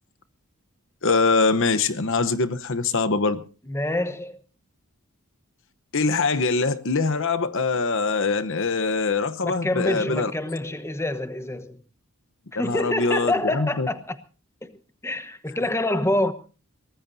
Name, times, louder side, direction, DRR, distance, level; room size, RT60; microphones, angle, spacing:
voice 1, 1.0-3.4 5.9-10.3 12.6-13.9, left 4 dB, 60° left, 1.0 m, -23 dB
voice 2, 3.7-4.4 9.4-11.8 12.5-14.2 14.6-14.7 15.0-16.3, left 1 dB, 10° left, 1.1 m, -26 dB
23.0 x 19.0 x 2.7 m
head